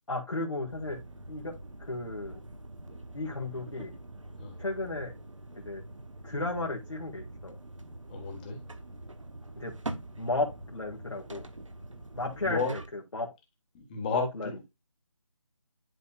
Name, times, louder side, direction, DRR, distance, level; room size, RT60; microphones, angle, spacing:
voice 1, 0.1-1.0 1.3-1.5 1.8-2.4 3.1-3.9 4.6-5.1 5.6-5.8 6.2-7.5 9.6-9.7 10.2-11.5 12.1-12.8 13.1-13.3 14.1-14.5, left 2 dB, 65° left, 1.9 m, -34 dB
sound 1, 0.7-12.9, right 2 dB, 75° right, 1.1 m, -44 dB
voice 2, 8.1-8.6 12.5-12.7 13.7-14.5, left 4 dB, 15° left, 1.5 m, -32 dB
11.0 x 4.1 x 2.4 m
figure-of-eight pair, 155°, 16 cm